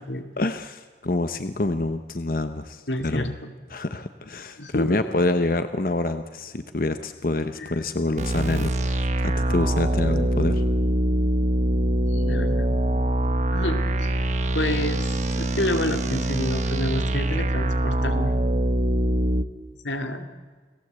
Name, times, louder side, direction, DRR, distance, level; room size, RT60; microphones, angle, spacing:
voice 1, 0.4-3.3 3.7-10.6, left 2 dB, 50° left, 9 dB, 1.0 m, -27 dB
voice 2, 2.9-3.5 4.6-5.1 7.6-7.8 12.1-12.7 13.5-14.1 14.5-18.3 19.8-20.3, left 1 dB, 90° left, 6 dB, 2.5 m, -29 dB
sound 1, 8.2-19.5, right 1 dB, 40° right, 1.4 m, -23 dB
29.5 x 18.5 x 8.2 m, 1.5 s
head